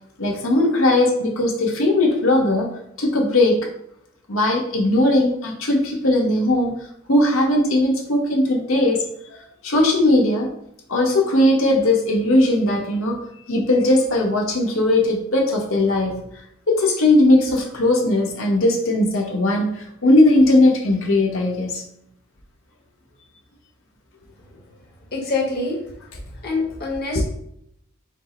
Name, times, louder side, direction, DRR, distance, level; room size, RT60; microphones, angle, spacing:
voice 1, 0.2-2.7 3.0-3.6 4.3-6.7 7.1-9.0 9.6-10.5 10.9-16.3 16.7-21.8 27.1-27.3, left 1 dB, 70° left, 0 dB, 1.1 m, -18 dB
voice 2, 25.1-25.8 26.4-27.3, left 3 dB, 50° left, -1 dB, 1.0 m, -25 dB
5.2 x 2.0 x 4.4 m, 0.73 s
head